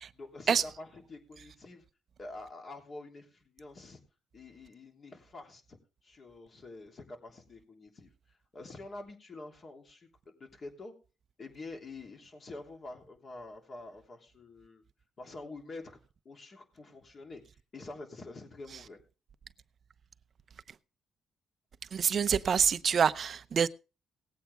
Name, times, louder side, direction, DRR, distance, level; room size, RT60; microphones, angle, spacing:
voice 1, 0.1-1.8 2.2-4.0 4.3-10.9 11.4-14.8 15.2-16.0 16.2-17.4 17.7-19.0, left 2 dB, 40° left, 3.1 m, -47 dB
voice 2, 21.9-23.7, right 7 dB, 50° right, 0.7 m, -26 dB
18.5 x 8.4 x 3.5 m
cardioid pair, 90°, 0 cm